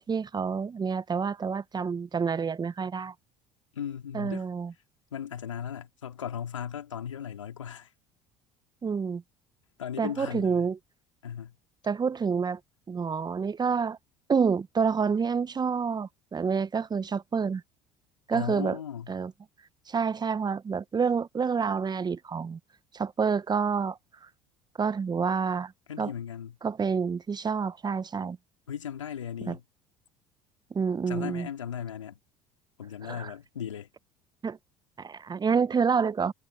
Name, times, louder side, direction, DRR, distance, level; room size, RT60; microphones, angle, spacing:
voice 1, 0.0-3.1 4.1-4.7 8.8-9.2 10.0-10.8 11.8-12.6 12.9-14.0 14.3-17.6 18.3-18.8 19.1-19.3 19.9-22.6 22.9-24.0 24.8-25.7 26.0-26.1 26.6-28.4 29.5-29.6 30.7-31.5 33.0-33.3 34.4-34.6 35.0-36.3, right 5 dB, 25° right, 1.1 m, -28 dB
voice 2, 3.7-4.4 5.1-7.9 9.8-10.7 11.2-11.5 18.3-19.1 25.9-26.6 28.7-29.6 31.1-32.2 32.8-33.9, left 8 dB, 85° left, 3.1 m, -37 dB
hypercardioid pair, 65°, 16 cm